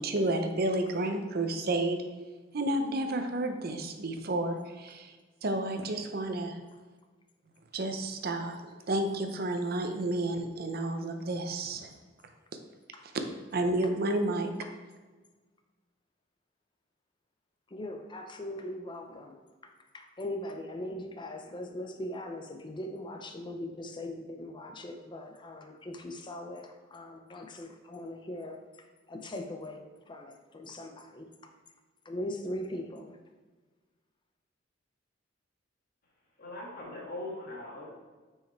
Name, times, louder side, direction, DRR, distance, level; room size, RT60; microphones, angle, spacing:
voice 1, 0.0-2.0 2.5-5.1 5.4-6.6 7.7-11.9 13.5-14.5, right 1 dB, 55° right, 6 dB, 0.7 m, -31 dB
voice 2, 17.7-31.5 32.0-33.2, left 1 dB, 25° left, 4 dB, 0.5 m, -40 dB
voice 3, 36.4-37.9, left 1 dB, 50° left, -3 dB, 1.7 m, -40 dB
6.3 x 4.8 x 4.3 m, 1.3 s
head